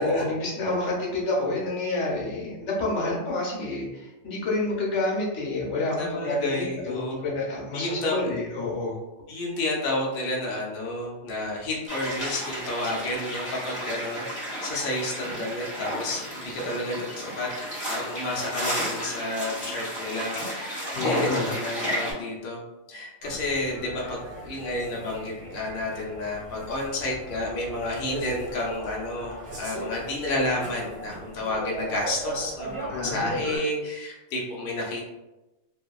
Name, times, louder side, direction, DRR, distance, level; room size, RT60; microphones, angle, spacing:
voice 1, 0.0-9.0 20.9-21.5 32.9-33.3, left 2 dB, 80° left, -3 dB, 1.1 m, -28 dB
voice 2, 6.0-7.3 7.7-8.2 9.3-17.5 17.9-22.6 22.9-35.1, left 1 dB, 55° left, -3 dB, 0.7 m, -31 dB
sound 1, 11.9-22.1, equal, 25° left, 1.3 m, -32 dB
sound 2, 23.2-33.6, right 2 dB, 55° right, 1.4 m, -38 dB
2.7 x 2.4 x 2.2 m, 1.0 s
omnidirectional pair, 1.2 m